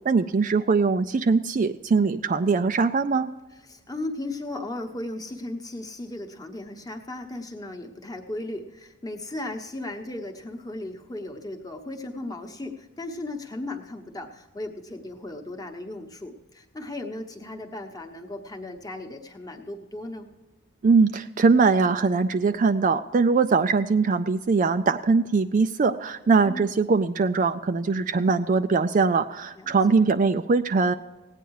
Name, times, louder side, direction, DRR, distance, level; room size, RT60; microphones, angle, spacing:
voice 1, 0.0-3.3 20.8-30.9, right 4 dB, 35° right, 9 dB, 0.3 m, -21 dB
voice 2, 3.6-20.3 26.4-26.7 29.5-29.7, left 2 dB, 15° left, 4 dB, 1.0 m, -36 dB
17.0 x 9.2 x 4.7 m, 1.1 s
head